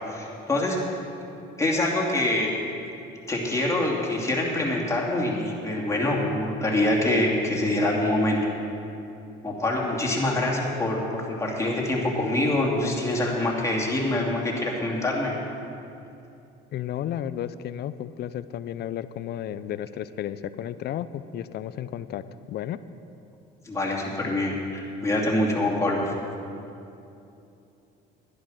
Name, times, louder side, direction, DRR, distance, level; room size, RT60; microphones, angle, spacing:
voice 1, 0.1-0.9 1.6-2.5 3.3-8.4 9.4-15.3 23.6-26.1, left 1 dB, 15° left, -3 dB, 2.6 m, -25 dB
voice 2, 16.7-22.2 22.5-22.8, left 11 dB, 55° left, 14 dB, 0.5 m, -33 dB
11.5 x 10.5 x 6.3 m, 2.8 s
cardioid pair, 100°, 20 cm